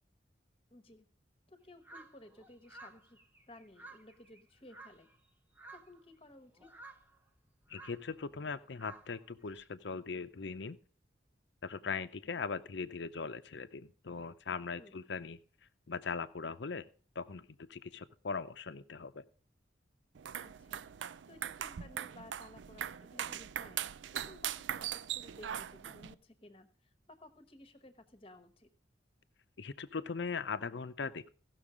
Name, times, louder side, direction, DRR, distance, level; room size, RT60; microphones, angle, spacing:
voice 1, 0.7-1.0 1.5-3.2 3.5-5.1 5.7-6.7 14.7-15.0 20.4-24.9 25.1-26.7 27.1-28.7, left 1 dB, 30° left, 10 dB, 1.1 m, -56 dB
sound 1, 1.8-5.3 5.6-6.1 6.5-9.7, right 3 dB, 10° right, 0.8 m, -55 dB
voice 2, 7.7-10.8 11.6-15.4 15.9-16.8 17.2-19.2 29.6-31.3, left 5 dB, 75° left, 13 dB, 0.6 m, -40 dB
sound 2, 20.2-26.1, right 10 dB, 85° right, 0.4 m, -41 dB
16.0 x 6.3 x 4.9 m, 0.41 s
head